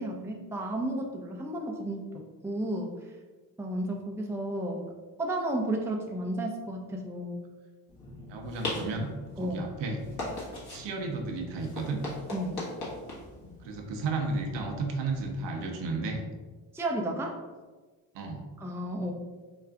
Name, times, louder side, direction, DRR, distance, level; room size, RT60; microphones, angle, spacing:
voice 1, 0.0-2.9 3.6-4.8 5.2-7.4 9.4-9.6 12.3-12.6 16.7-17.4 18.6-19.1, right 1 dB, 5° right, 0 dB, 0.5 m, -32 dB
sound 1, 7.9-15.4, left 1 dB, 50° left, 1.3 m, -40 dB
voice 2, 8.3-10.0 10.7-12.0 13.6-16.2 18.1-18.5, right 3 dB, 65° right, 2 dB, 0.7 m, -33 dB
4.8 x 2.4 x 2.3 m, 1.3 s
hypercardioid pair, 45°, 48 cm